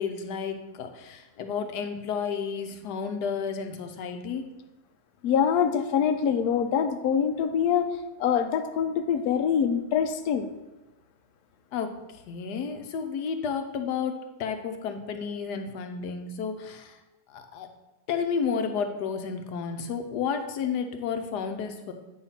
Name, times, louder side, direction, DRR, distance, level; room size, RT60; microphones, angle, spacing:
voice 1, 0.0-4.5 11.7-11.9 12.3-17.0 17.3-17.7 18.1-21.9, left 6 dB, 90° left, 6 dB, 1.3 m, -31 dB
voice 2, 5.2-7.9 8.2-10.5, left 8 dB, 75° left, 7 dB, 1.1 m, -24 dB
8.6 x 3.2 x 5.6 m, 1.0 s
omnidirectional pair, 1.7 m